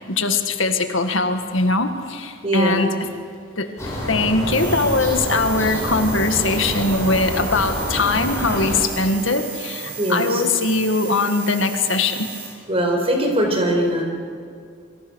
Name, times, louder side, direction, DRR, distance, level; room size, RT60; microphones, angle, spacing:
voice 1, 0.1-2.9 3.6-3.7 4.1-12.3, left 3 dB, 75° left, 6 dB, 1.8 m, -21 dB
voice 2, 2.4-2.9 10.0-10.4 12.7-14.0, right 1 dB, 30° right, 2 dB, 4.6 m, -21 dB
sound 1, 3.8-8.8, equal, 15° left, 7.7 m, -27 dB
sound 2, 4.5-12.5, right 7 dB, 65° right, 7.4 m, -34 dB
28.0 x 24.0 x 6.4 m, 2.2 s
head